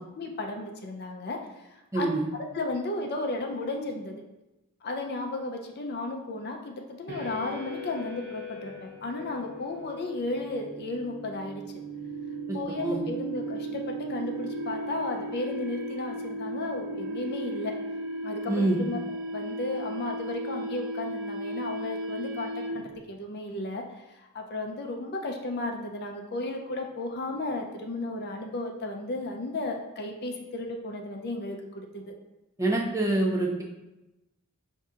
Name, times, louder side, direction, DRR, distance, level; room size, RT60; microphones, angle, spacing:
voice 1, 0.2-1.4 1.7-2.1 2.4-4.2 4.8-11.6 12.5-17.7 18.2-19.0 19.3-32.1, left 2 dB, 45° left, 2 dB, 0.5 m, -34 dB
sound 1, 7.1-23.0, right 1 dB, 50° right, 0.8 m, -36 dB
voice 2, 18.5-18.8 32.6-33.6, right 2 dB, 15° right, -1 dB, 0.6 m, -25 dB
5.3 x 2.7 x 3.6 m, 0.97 s
head